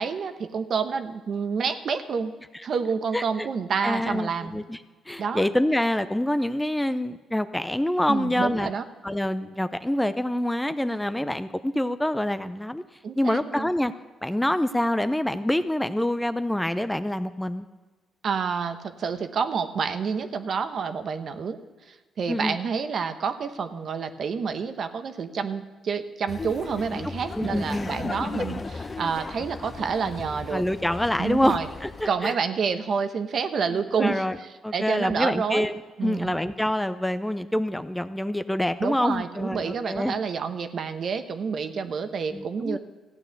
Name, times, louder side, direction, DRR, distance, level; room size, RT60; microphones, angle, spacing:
voice 1, 0.0-2.3 2.6-4.5 5.2-5.5 8.1-8.8 13.0-13.7 18.2-21.6 21.9-30.6 31.2-31.7 32.0-35.7 36.0-36.3 38.8-42.8, right 6 dB, 55° right, 9 dB, 1.0 m, -28 dB
voice 2, 3.1-3.5 3.8-4.8 5.1-8.7 9.0-12.8 13.2-13.9 14.2-17.7 22.3-22.6 27.4-27.9 30.5-32.4 34.0-34.4 34.6-35.7 36.0-40.2 42.3-42.8, left 1 dB, 5° left, 11 dB, 0.5 m, -26 dB
Laughter, 26.3-32.1, left 3 dB, 30° left, 0.9 m, -36 dB
15.0 x 9.0 x 6.6 m, 1.3 s
cardioid pair, 90°, 0 cm